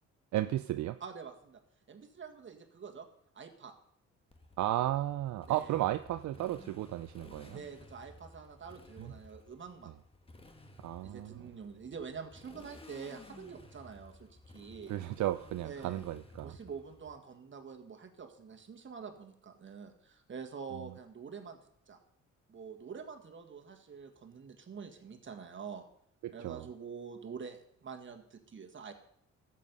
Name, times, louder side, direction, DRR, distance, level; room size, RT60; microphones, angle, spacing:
voice 1, 0.3-1.0 4.6-7.6 9.0-9.1 10.8-11.5 14.9-16.6 26.2-26.7, right 14 dB, 70° right, 11 dB, 0.5 m, -34 dB
voice 2, 1.0-1.6 1.9-3.1 3.3-3.7 5.5-5.8 7.5-9.9 11.0-14.9 15.6-16.0 16.4-21.6 21.9-22.0 22.5-25.8 26.3-28.9, right 6 dB, 40° right, 5 dB, 1.8 m, -46 dB
Motorcycle, 4.3-17.2, left 2 dB, 20° left, 1.3 m, -55 dB
13.5 x 7.5 x 5.4 m, 0.70 s
cardioid pair, 90°, 30 cm